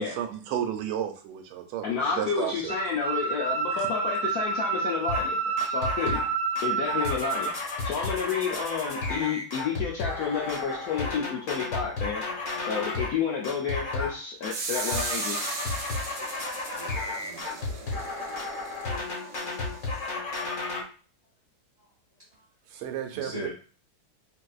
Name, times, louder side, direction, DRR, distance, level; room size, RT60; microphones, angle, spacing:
voice 1, 0.0-2.8 3.7-3.9 22.7-23.5, right 10 dB, 90° right, 6 dB, 1.4 m, -33 dB
voice 2, 1.8-6.2 6.6-12.3 12.6-15.5, left 6 dB, 85° left, -2 dB, 0.8 m, -30 dB
sound 1, 2.7-7.5, right 4 dB, 20° right, 0.5 m, -29 dB
sound 2, 5.1-5.3 5.6-6.3 6.6-13.2 13.4-14.2 14.4-20.8, left 3 dB, 50° left, 1.1 m, -33 dB
sound 3, 14.5-20.2, right 4 dB, 70° right, 1.2 m, -37 dB
voice 3, 16.8-18.0 19.8-20.1 23.1-23.5, right 1 dB, 35° right, -7 dB, 1.2 m, -41 dB
3.9 x 2.6 x 2.3 m, 0.38 s
omnidirectional pair, 2.2 m